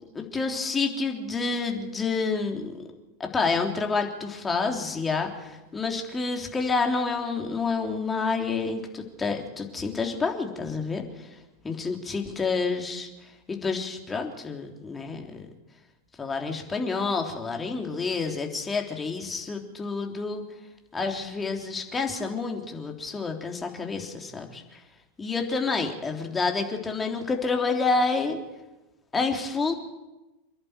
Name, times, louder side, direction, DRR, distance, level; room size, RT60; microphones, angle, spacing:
voice 1, 0.1-2.8 3.2-11.3 11.6-13.1 13.5-15.5 16.2-20.4 20.9-24.8 25.2-28.4 29.1-29.7, left 4 dB, 15° left, 3 dB, 3.4 m, -28 dB
28.0 x 11.0 x 9.2 m, 1.1 s
figure-of-eight pair, 85°, 0 cm